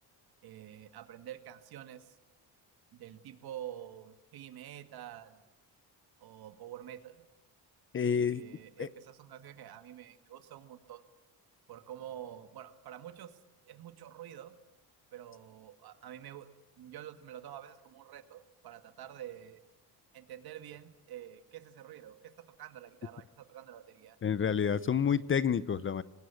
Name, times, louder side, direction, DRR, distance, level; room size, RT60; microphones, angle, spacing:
voice 1, 0.4-2.2 2.9-5.4 6.2-7.2 8.2-11.0 11.7-13.4 13.7-14.5 15.1-16.5 16.8-19.6 20.1-22.3 22.6-24.2 24.7-25.0, right 11 dB, 65° right, 9 dB, 2.0 m, -48 dB
voice 2, 7.9-8.4 8.8-8.9 24.2-26.0, left 7 dB, 30° left, 17 dB, 0.7 m, -29 dB
25.0 x 19.0 x 8.4 m, 1.0 s
cardioid pair, 125°, 39 cm